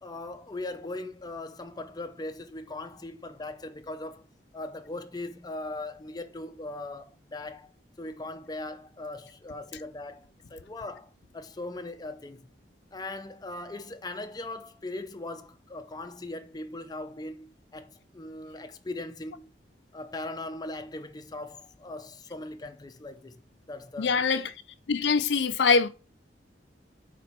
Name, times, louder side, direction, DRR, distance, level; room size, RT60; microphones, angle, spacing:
voice 1, 0.0-4.3 4.5-7.7 8.0-10.2 10.5-12.5 12.9-19.5 19.9-23.3 23.7-24.3, left 2 dB, 25° left, 0.6 m, -39 dB
voice 2, 24.0-24.5 24.9-25.9, left 5 dB, 80° left, 0.5 m, -23 dB
4.3 x 4.2 x 5.7 m
head